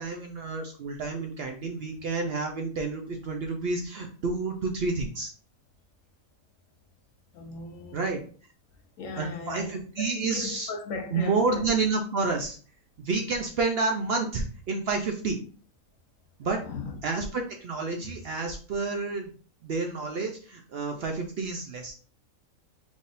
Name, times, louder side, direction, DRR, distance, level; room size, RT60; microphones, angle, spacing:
voice 1, 0.0-5.3 7.9-8.2 9.2-10.7 11.1-12.6 13.0-15.4 16.4-16.6 17.0-19.3 19.6-21.9, right 3 dB, 60° right, 0.6 m, -29 dB
voice 2, 7.3-8.3 9.0-11.7 13.4-13.5 16.6-17.0 18.0-18.1, left 4 dB, 70° left, 1.1 m, -38 dB
4.0 x 3.6 x 2.5 m
omnidirectional pair, 1.5 m